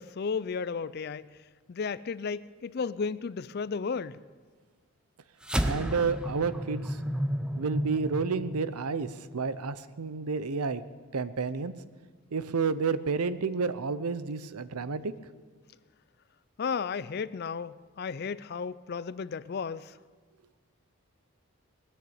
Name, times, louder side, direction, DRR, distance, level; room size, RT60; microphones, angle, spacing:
voice 1, 0.0-1.3 1.7-4.2 16.6-20.0, left 5 dB, 45° left, 17 dB, 0.4 m, -34 dB
sound 1, 5.4-10.1, equal, 5° right, 0.6 m, -33 dB
voice 2, 5.6-7.0 7.6-10.8 11.1-11.7 12.3-15.1, right 5 dB, 90° right, 14 dB, 0.7 m, -30 dB
20.0 x 6.7 x 8.7 m, 1.5 s
head